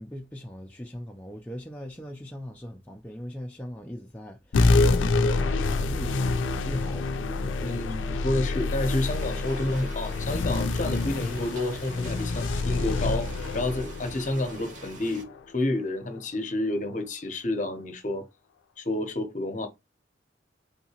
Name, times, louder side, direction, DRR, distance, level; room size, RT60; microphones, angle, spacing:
voice 1, 0.0-6.3 6.6-8.3, equal, 10° left, 0.4 m, -40 dB
sound 1, 4.5-15.4, left 3 dB, 90° left, 0.4 m, -27 dB
voice 2, 7.6-15.3 15.5-18.3 18.8-19.7, left 2 dB, 40° left, 0.7 m, -30 dB
sound 2, 8.8-15.3, right 2 dB, 45° right, 0.9 m, -45 dB
3.4 x 2.8 x 2.8 m
head